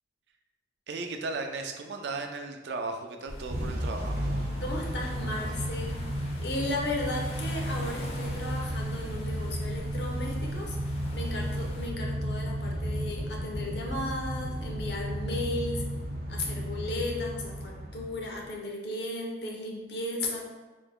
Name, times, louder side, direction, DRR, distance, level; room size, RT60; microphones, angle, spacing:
voice 1, 0.9-4.5, right 3 dB, 80° right, 5 dB, 0.4 m, -36 dB
sound 1, 3.3-11.9, left 1 dB, 35° left, 0.4 m, -45 dB
Motor vehicle (road) / Engine starting / Accelerating revving vroom, 3.5-18.5, equal, 65° right, 0.8 m, -33 dB
voice 2, 4.6-6.0 6.4-15.9 16.3-20.4, left 2 dB, 75° left, 0 dB, 0.6 m, -35 dB
3.4 x 2.1 x 3.6 m, 1.2 s
head